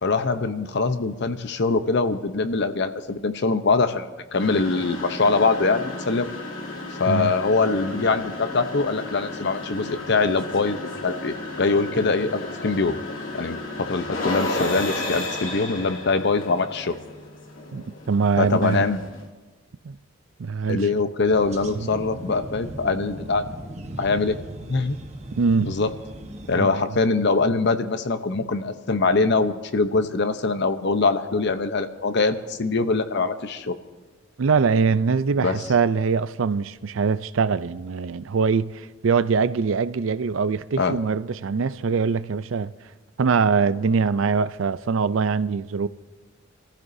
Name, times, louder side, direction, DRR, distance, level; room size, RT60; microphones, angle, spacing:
voice 1, 0.0-6.3 7.0-13.0 13.3-17.0 18.4-19.0 20.7-23.4 24.0-24.4 24.7-24.9 25.6-25.9 26.5-33.8 35.4-35.6 40.8-41.0, left 3 dB, 60° left, 0.8 m, -23 dB
sound 1, 4.3-19.3, left 2 dB, 80° left, 2.5 m, -33 dB
voice 2, 17.7-18.8 19.8-20.0 20.4-20.9 21.7-21.9 25.4-25.8 26.6-27.0 34.4-42.7 43.2-45.9, right 5 dB, 75° right, 0.5 m, -23 dB
sound 2, 21.3-26.6, right 1 dB, 35° right, 1.2 m, -38 dB
28.0 x 14.5 x 2.7 m
head